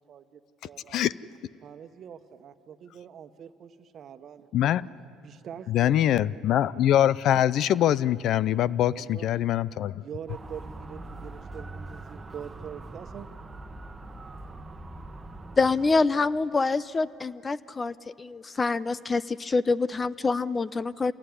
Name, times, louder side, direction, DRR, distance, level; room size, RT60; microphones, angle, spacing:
voice 1, 0.1-1.0 1.6-4.8 5.2-6.3 8.5-9.3 10.0-13.3, right 8 dB, 55° right, 9 dB, 1.2 m, -44 dB
voice 2, 4.5-4.9 5.7-9.9, left 11 dB, 65° left, 20 dB, 0.5 m, -23 dB
Motor vehicle (road) / Siren, 10.3-15.9, right 2 dB, 20° right, 1.4 m, -42 dB
voice 3, 15.6-21.1, left 4 dB, 30° left, 17 dB, 0.7 m, -26 dB
27.0 x 17.5 x 9.9 m, 2.6 s
supercardioid pair, 75°, 0 cm